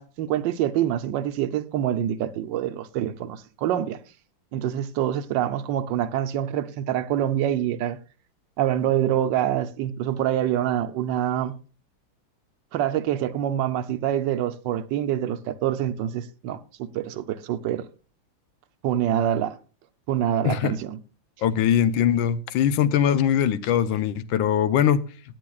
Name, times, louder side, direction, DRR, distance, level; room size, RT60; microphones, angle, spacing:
voice 1, 0.0-4.0 4.5-8.0 8.6-11.6 12.7-17.9 18.8-19.6 20.1-21.0, right 11 dB, 75° right, 1.3 m, -26 dB
voice 2, 20.4-20.8 21.4-25.0, left 9 dB, 90° left, 1.4 m, -21 dB
17.0 x 9.2 x 2.3 m
omnidirectional pair, 2.1 m